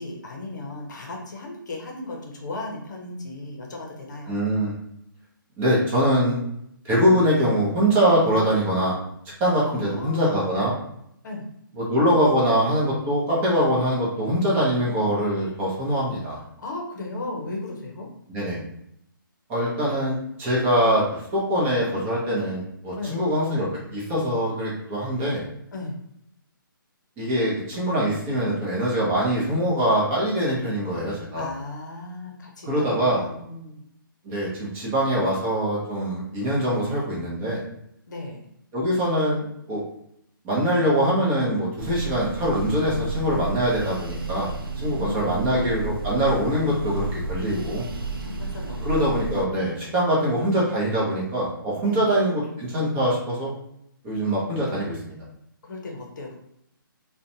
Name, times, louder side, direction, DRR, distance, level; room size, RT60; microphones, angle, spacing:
voice 1, 0.0-4.4 9.6-10.4 11.2-11.4 16.6-18.1 22.9-23.2 25.7-26.0 31.3-33.8 38.1-38.4 44.9-46.0 48.2-49.5 49.9-50.1 51.8-52.0 55.6-56.4, left 2 dB, 55° left, 0 dB, 0.7 m, -36 dB
voice 2, 4.3-4.7 5.6-6.4 6.8-9.0 9.4-10.7 11.8-16.4 18.3-18.6 19.5-25.4 27.2-31.5 32.7-33.2 34.2-37.6 38.7-39.8 40.4-47.8 48.8-53.5 54.0-55.2, equal, 15° right, -5 dB, 0.7 m, -23 dB
sound 1, 41.8-49.5, right 3 dB, 85° right, 0.4 m, -31 dB
2.4 x 2.1 x 2.7 m, 0.76 s
figure-of-eight pair, 140°, 12 cm